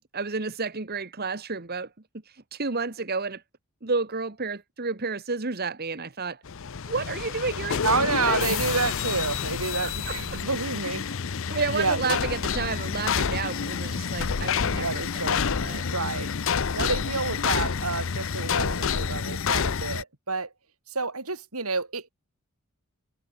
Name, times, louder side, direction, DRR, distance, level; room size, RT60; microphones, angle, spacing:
voice 1, 0.1-1.9 2.2-3.4 3.8-6.4 6.9-7.8 8.1-8.5 9.8-10.4 11.1-11.2 11.5-15.9, right 4 dB, 45° right, 1.5 m, -31 dB
sound 1, 6.5-20.0, left 6 dB, 60° left, 0.7 m, -28 dB
voice 2, 7.8-11.0 11.7-12.2 14.7-16.3 16.7-20.5 20.9-22.1, right 4 dB, 80° right, 5.1 m, -29 dB
head